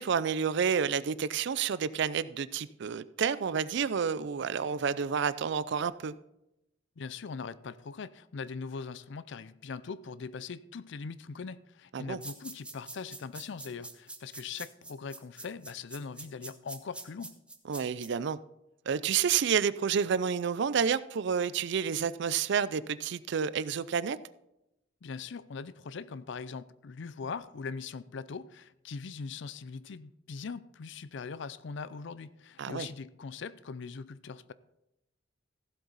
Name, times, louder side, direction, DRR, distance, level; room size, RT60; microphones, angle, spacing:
voice 1, 0.0-6.1 11.9-12.2 17.7-18.4 18.9-24.2 32.6-32.9, right 7 dB, 65° right, 0.4 m, -29 dB
voice 2, 7.0-17.4 25.0-34.5, left 5 dB, 65° left, 0.5 m, -41 dB
sound 1, 12.2-18.1, right 2 dB, 5° right, 0.8 m, -45 dB
15.0 x 7.9 x 4.0 m
head